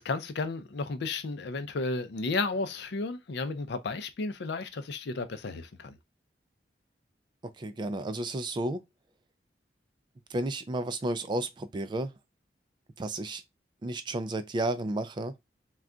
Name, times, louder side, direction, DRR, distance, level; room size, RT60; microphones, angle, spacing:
voice 1, 0.0-5.9, left 3 dB, 70° left, 0.5 m, -33 dB
voice 2, 7.4-8.8 10.3-12.1 13.0-13.4 13.8-15.3, right 2 dB, 25° right, 0.3 m, -32 dB
2.3 x 2.2 x 3.7 m
head